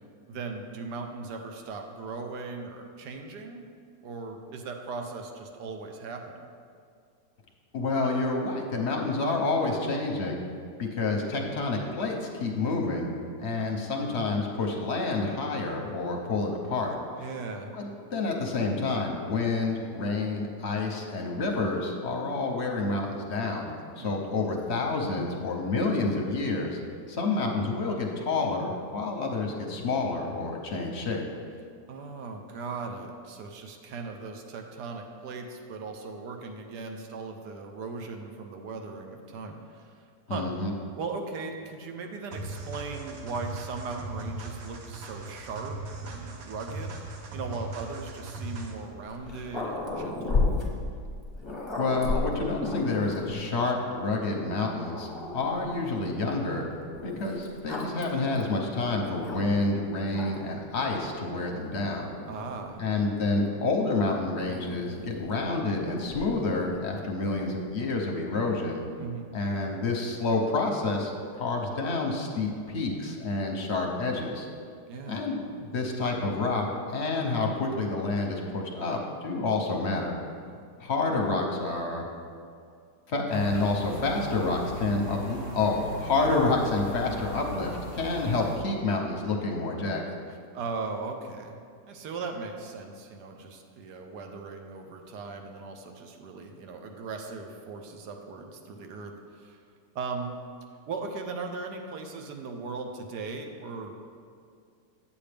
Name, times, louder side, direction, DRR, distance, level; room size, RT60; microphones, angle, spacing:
voice 1, 0.3-3.7 4.0-6.5 17.2-17.7 23.9-24.1 31.9-39.9 40.3-40.5 40.9-45.8 46.0-47.0 47.3-50.4 62.3-62.8 69.0-69.3 74.9-75.3 80.5-80.6 90.5-91.6 91.8-99.6 99.9-100.4 100.9-103.9, right 4 dB, 75° right, 4 dB, 1.3 m, -38 dB
voice 2, 7.7-10.4 10.8-13.1 13.4-16.9 17.7-23.7 24.0-26.8 27.1-31.2 40.3-40.7 51.8-56.7 57.0-62.1 62.8-68.8 69.3-71.1 71.4-74.5 75.1-80.2 80.8-82.0 83.1-90.2, left 3 dB, 55° left, 1 dB, 0.8 m, -28 dB
sound 1, 42.3-48.9, right 2 dB, 60° right, 1.1 m, -39 dB
Growling, 49.0-53.6 54.3-54.4 54.8-55.9 56.9-59.7 60.1-60.6 61.5-63.3 64.4-67.0, left 3 dB, 25° left, 0.7 m, -35 dB
sound 2, 83.3-88.6, equal, 45° right, 0.4 m, -37 dB
8.7 x 7.4 x 3.4 m, 2.3 s
omnidirectional pair, 1.8 m